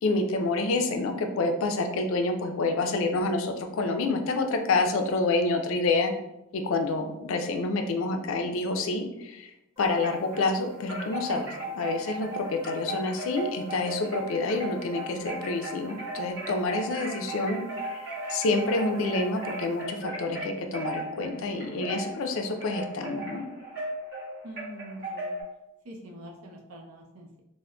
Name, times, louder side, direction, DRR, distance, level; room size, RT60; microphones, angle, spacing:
voice 1, 0.0-6.1 6.5-9.5 9.8-23.4, left 3 dB, 70° left, 5 dB, 0.4 m, -28 dB
sound 1, 9.8-19.8, right 5 dB, 15° right, 0.7 m, -50 dB
Wind chime, 9.9-10.5 10.9-25.4, right 1 dB, 50° right, 1.3 m, -37 dB
voice 2, 12.9-13.3 24.4-25.4 25.8-27.4, right 1 dB, 85° right, 0 dB, 0.6 m, -45 dB
3.6 x 2.0 x 2.2 m, 0.89 s
head